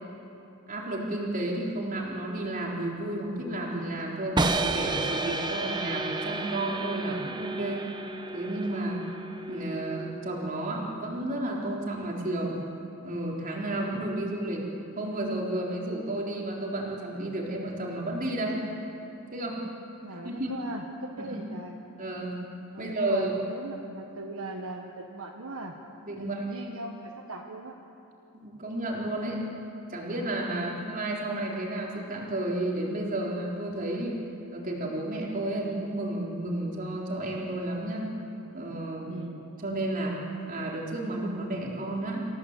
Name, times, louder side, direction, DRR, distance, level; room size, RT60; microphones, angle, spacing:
voice 1, 0.7-7.8 8.3-9.0 9.5-12.6 13.0-14.6 15.0-18.6 19.3-19.6 20.1-20.5 21.2-21.4 22.0-22.4 22.8-23.4 26.0-26.5 28.3-29.4 29.9-34.2 34.5-38.1 38.5-39.1 39.6-42.3, right 1 dB, 40° right, -2 dB, 4.0 m, -32 dB
sound 1, 4.4-10.3, right 2 dB, 20° right, 1.0 m, -31 dB
voice 2, 20.0-21.8 22.7-25.7 26.2-27.8 30.5-30.8 39.1-39.4, right 2 dB, 70° right, 1 dB, 1.5 m, -40 dB
27.5 x 16.5 x 8.3 m, 2.9 s
head